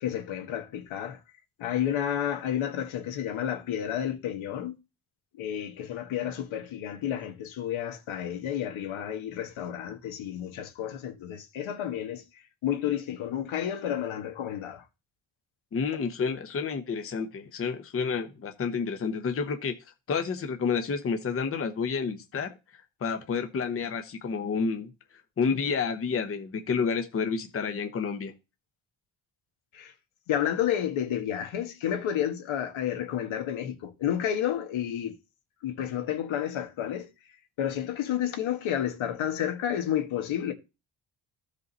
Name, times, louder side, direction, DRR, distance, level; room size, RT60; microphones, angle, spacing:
voice 1, 0.0-1.2 1.6-4.7 5.3-14.9 29.7-29.9 30.3-35.2 35.6-37.1 37.6-40.5, left 10 dB, 80° left, 1.7 m, -31 dB
voice 2, 15.7-19.7 20.1-22.5 23.0-24.9 25.4-28.3, left 5 dB, 30° left, 0.9 m, -29 dB
14.0 x 5.3 x 4.1 m
cardioid pair, 175°, 47 cm